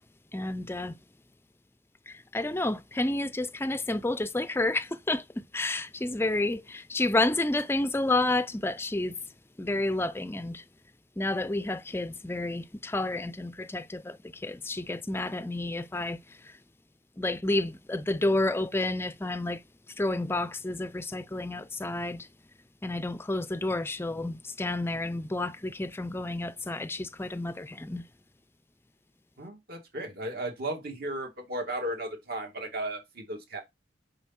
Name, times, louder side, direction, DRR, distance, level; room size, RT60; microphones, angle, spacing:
voice 1, 0.3-1.0 2.3-9.2 9.6-10.6 11.2-14.2 14.4-16.2 17.2-19.6 20.0-22.3 22.8-28.0, left 2 dB, 10° left, 0.4 m, -30 dB
voice 2, 29.4-33.6, right 1 dB, 55° right, 2.4 m, -35 dB
7.0 x 5.4 x 4.3 m
head